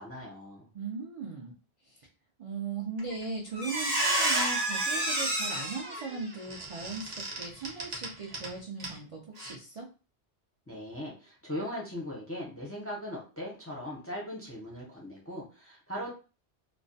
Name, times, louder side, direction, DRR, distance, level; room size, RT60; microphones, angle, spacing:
voice 1, 0.0-0.7 10.7-16.1, equal, 20° left, -3 dB, 0.4 m, -39 dB
voice 2, 0.7-1.5 1.8-2.1 2.4-9.9, right 4 dB, 65° right, -2 dB, 0.3 m, -38 dB
Squeak, 3.0-3.2 3.5-8.5 8.8-9.0 9.4-9.5, right 1 dB, 40° right, 0.7 m, -30 dB
2.3 x 2.1 x 2.6 m, 0.34 s
omnidirectional pair, 1.2 m